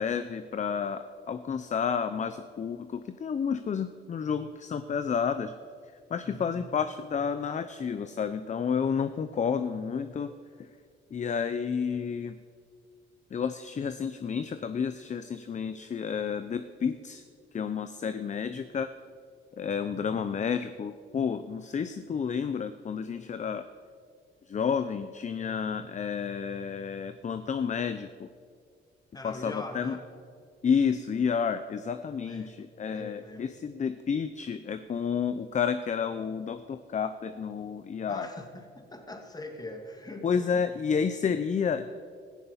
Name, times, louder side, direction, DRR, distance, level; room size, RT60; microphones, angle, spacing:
voice 1, 0.0-5.5 6.1-10.3 10.6-10.7 11.1-12.4 13.3-17.2 17.5-18.9 19.6-23.7 24.5-28.3 29.2-30.0 30.6-38.3 40.2-41.9, left 6 dB, 35° left, 11 dB, 0.7 m, -30 dB
voice 2, 6.2-6.6 29.1-30.0 32.2-32.5 32.9-33.5 38.1-40.6, left 2 dB, 20° left, 5 dB, 2.3 m, -42 dB
16.5 x 14.5 x 5.7 m, 2.1 s
cardioid pair, 90°, 20 cm